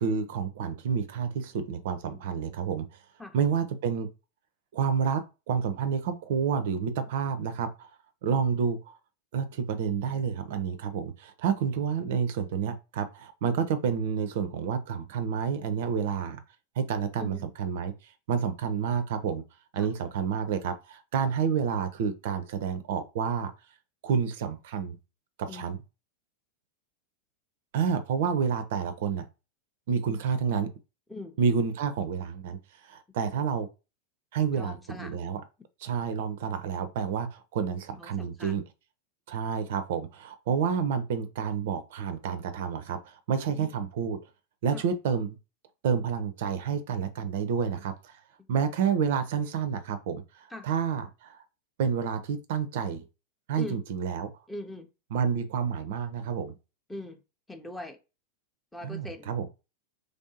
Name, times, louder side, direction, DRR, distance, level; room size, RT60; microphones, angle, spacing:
voice 1, 0.0-2.9 3.3-4.1 4.7-5.2 5.5-7.9 8.2-8.9 9.3-16.4 16.8-17.9 18.3-19.4 19.7-23.5 24.0-25.0 25.4-25.8 27.7-29.3 29.9-30.7 31.4-32.6 32.9-33.7 34.3-35.4 35.8-38.6 39.3-44.2 44.6-45.4 45.8-47.9 48.5-50.2 50.6-51.4 51.8-53.0 53.5-54.3 55.1-56.5 58.8-59.5, right 6 dB, 55° right, 0.4 m, -29 dB
voice 2, 34.5-35.2 38.0-38.6 43.5-43.7 44.7-44.8 48.4-48.5 50.5-50.7 53.6-53.8 54.5-54.9 56.9-57.2 57.5-58.0 58.7-59.3, left 2 dB, 5° left, 0.5 m, -41 dB
3.2 x 2.6 x 2.6 m
figure-of-eight pair, 90°, 0 cm